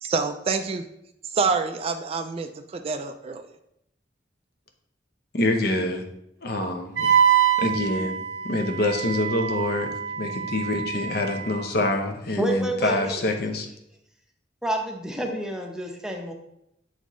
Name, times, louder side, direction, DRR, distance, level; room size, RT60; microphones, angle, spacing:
voice 1, 0.0-0.8 1.3-3.5, right 4 dB, 35° right, 8 dB, 0.3 m, -27 dB
voice 2, 5.3-6.0 6.4-7.1 7.6-8.2 8.4-9.9 10.2-13.7, left 1 dB, 60° left, 4 dB, 0.8 m, -26 dB
Wind instrument woodwind instrument, 7.0-11.6, right 8 dB, 90° right, 1.0 m, -25 dB
voice 3, 12.4-13.2 14.6-16.3, right 1 dB, 5° right, 2 dB, 0.7 m, -28 dB
7.9 x 4.2 x 3.0 m, 0.79 s
head